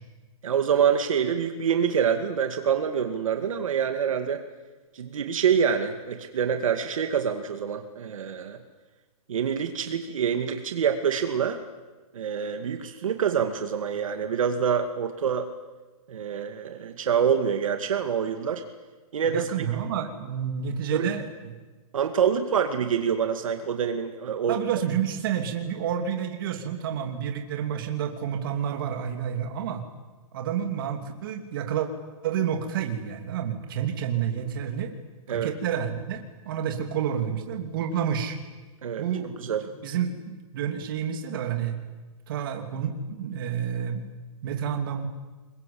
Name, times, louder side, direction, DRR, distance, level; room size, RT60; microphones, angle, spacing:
voice 1, 0.4-4.4 4.9-8.6 9.3-11.6 12.1-15.5 16.1-18.6 19.1-19.4 20.9-21.1 21.9-24.6 35.3-35.5 38.8-39.0 39.4-39.7, right 7 dB, 60° right, 6 dB, 2.3 m, -26 dB
voice 2, 19.2-21.5 24.5-29.8 30.3-31.9 32.2-34.9 35.3-38.4 39.0-41.8 42.3-44.0 44.4-45.1, right 8 dB, 35° right, 5 dB, 2.9 m, -29 dB
26.5 x 22.0 x 8.7 m, 1.3 s
hypercardioid pair, 175°, 19 cm